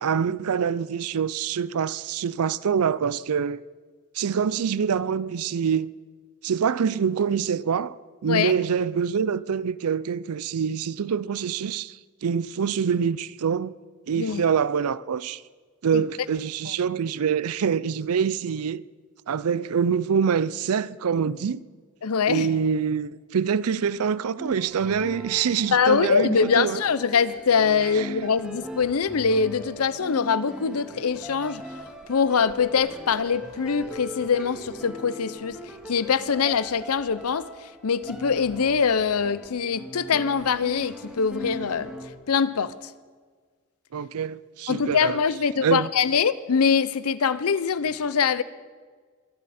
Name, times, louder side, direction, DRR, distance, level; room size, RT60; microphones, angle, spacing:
voice 1, 0.0-3.6 4.1-5.9 6.4-7.9 8.2-13.7 14.1-15.4 15.8-18.9 19.3-21.6 22.3-26.8 27.9-28.1 43.9-45.2 45.6-45.9, right 7 dB, 80° right, 0.5 m, -25 dB
voice 2, 22.0-22.5 25.7-31.6 32.1-41.9 42.3-42.9 44.7-48.4, left 6 dB, 80° left, 0.6 m, -23 dB
sound 1, 24.4-42.1, equal, 5° right, 2.0 m, -40 dB
23.0 x 12.0 x 4.3 m
head